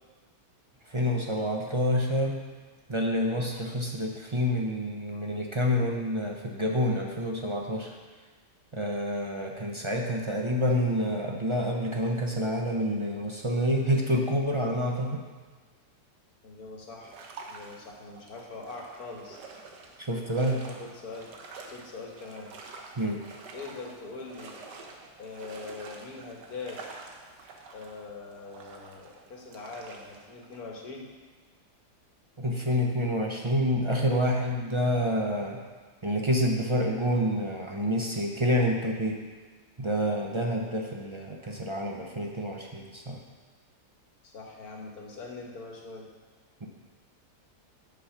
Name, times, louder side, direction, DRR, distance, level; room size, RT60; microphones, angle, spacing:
voice 1, 0.9-2.4 2.9-8.0 8.7-15.2 20.0-20.6 23.0-23.2 32.4-35.6 36.0-39.2 39.8-43.2 46.6-46.7, equal, 40° right, 0 dB, 0.4 m, -28 dB
voice 2, 16.4-19.4 20.5-21.3 21.7-22.5 23.5-24.6 25.2-26.8 27.7-31.1 44.2-46.1, left 3 dB, 65° left, 0 dB, 1.8 m, -42 dB
sound 1, 17.0-30.6, right 3 dB, 90° right, 1.6 m, -48 dB
8.4 x 6.3 x 5.7 m, 1.4 s
omnidirectional pair, 1.7 m